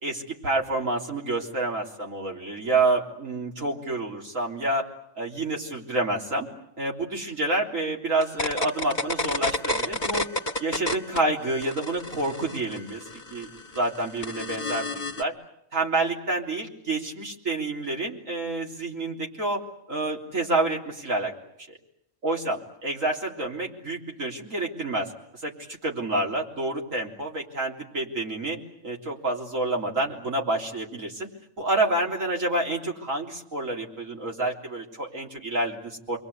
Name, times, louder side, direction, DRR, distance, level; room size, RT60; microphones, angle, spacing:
voice 1, 0.0-4.9 5.2-6.5 6.8-10.2 10.6-13.0 13.3-13.5 13.8-15.3 15.7-19.6 19.9-21.3 22.2-25.1 25.4-28.6 28.8-31.3 31.6-36.2, right 2 dB, 80° right, -1 dB, 4.1 m, -28 dB
sound 1, 8.2-11.2 11.5-15.2, left 1 dB, 35° left, 1.6 m, -30 dB
29.0 x 23.0 x 8.4 m, 0.79 s
omnidirectional pair, 1.3 m